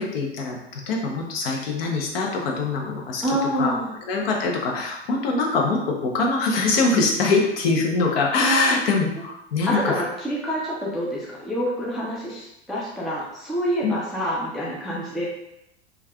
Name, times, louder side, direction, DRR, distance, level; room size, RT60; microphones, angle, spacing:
voice 1, 0.0-3.2 3.6-3.7 4.1-10.0 13.8-13.9, left 3 dB, 55° left, 0 dB, 0.7 m, -23 dB
voice 2, 3.2-3.9 8.4-8.8 9.6-15.3, equal, ahead, -5 dB, 0.3 m, -27 dB
3.3 x 2.3 x 2.2 m, 0.85 s
figure-of-eight pair, 90°, 35 cm